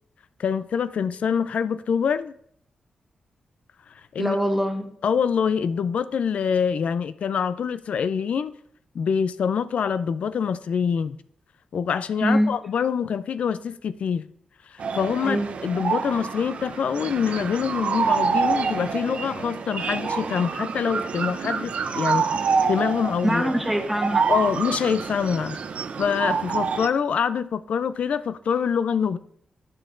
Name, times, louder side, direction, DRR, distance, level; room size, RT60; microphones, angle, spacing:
voice 1, 0.4-2.3 4.1-4.4 5.0-8.5 8.9-11.2 11.7-14.3 14.7-22.3 22.7-23.5 24.3-25.6 26.0-29.2, left 7 dB, 70° left, 0.4 m, -25 dB
voice 2, 4.2-4.9 12.2-12.5 15.2-15.5 23.2-24.3, equal, 5° right, 1.3 m, -23 dB
sound 1, 14.8-26.9, right 5 dB, 65° right, 0.5 m, -27 dB
9.2 x 6.7 x 2.5 m
cardioid pair, 70°, 2 cm